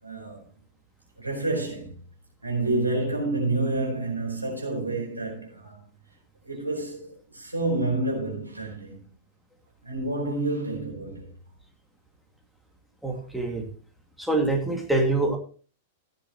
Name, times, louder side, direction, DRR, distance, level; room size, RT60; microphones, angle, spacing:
voice 1, 0.0-0.4 1.2-1.9 2.4-5.8 6.4-9.0 9.8-11.3 13.1-13.2, right 2 dB, 85° right, 4.4 m, -29 dB
voice 2, 13.0-13.6 14.2-15.4, right 2 dB, ahead, 2.3 m, -25 dB
14.5 x 10.0 x 3.0 m
figure-of-eight pair, 100°, 0 cm